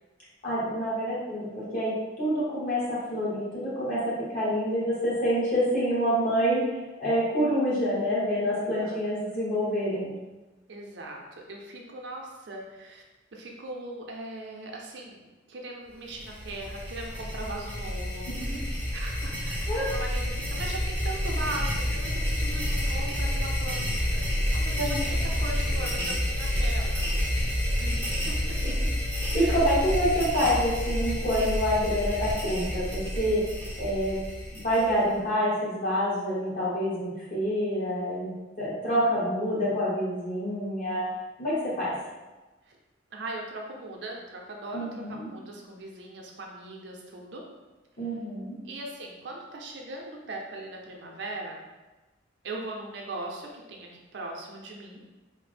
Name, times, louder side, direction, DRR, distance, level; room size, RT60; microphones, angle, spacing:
voice 1, 0.4-6.6 7.0-10.1 19.7-19.9 24.8-25.1 28.6-28.7 29.3-33.4 33.8-34.2 34.5-38.3 38.6-41.1 41.4-41.9 44.7-45.3 48.0-48.6, equal, 45° left, -7 dB, 1.1 m, -27 dB
voice 2, 8.5-9.1 9.3-9.4 10.7-13.0 13.3-15.2 15.5-18.6 18.9-24.2 24.5-28.6 29.4-29.6 42.7-42.8 43.1-47.4 48.6-51.6 52.4-55.0, right 2 dB, 65° right, 0 dB, 0.5 m, -39 dB
sound 1, 16.1-35.2, left 1 dB, 10° left, 0.6 m, -29 dB
3.3 x 2.0 x 3.3 m, 1.1 s
head